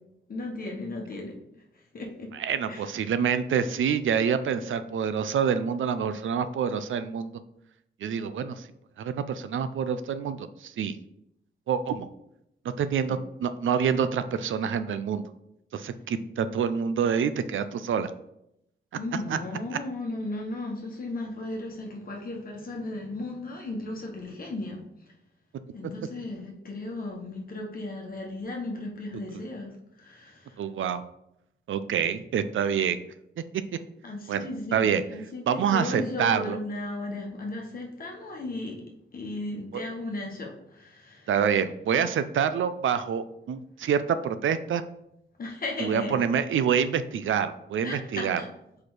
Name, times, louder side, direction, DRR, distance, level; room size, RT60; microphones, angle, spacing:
voice 1, 0.3-1.3 1.9-2.3 2.7-2.9 13.1-13.2 18.9-24.8 25.7-30.6 34.0-38.8 39.1-41.3 45.4-46.2 47.8-48.5, left 2 dB, 50° left, -1 dB, 1.2 m, -35 dB
voice 2, 2.3-7.4 8.0-8.7 9.0-10.9 11.7-12.1 12.8-15.3 15.7-18.1 19.3-19.4 29.3-29.4 30.6-31.0 31.7-33.0 34.3-35.0 35.5-36.6 39.7-39.8 41.3-44.8 45.8-48.4, right 7 dB, 90° right, 12 dB, 0.5 m, -27 dB
4.8 x 4.3 x 4.8 m, 0.80 s
wide cardioid pair, 165°, 20 cm